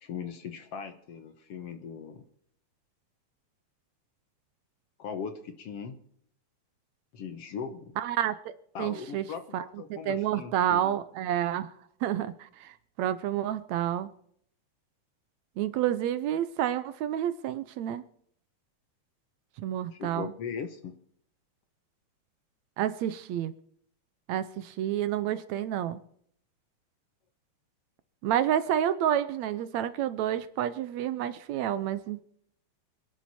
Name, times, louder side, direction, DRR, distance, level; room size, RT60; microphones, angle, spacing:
voice 1, 0.0-2.2 5.0-6.0 7.1-8.0 8.7-11.0 19.9-20.9, left 6 dB, 60° left, 2.0 m, -39 dB
voice 2, 8.0-8.5 8.8-9.3 9.5-11.7 12.0-14.1 15.6-18.0 19.6-20.3 22.8-23.5 24.3-26.0 28.2-32.2, right 11 dB, 75° right, 1.9 m, -29 dB
26.0 x 11.0 x 4.3 m
omnidirectional pair, 3.4 m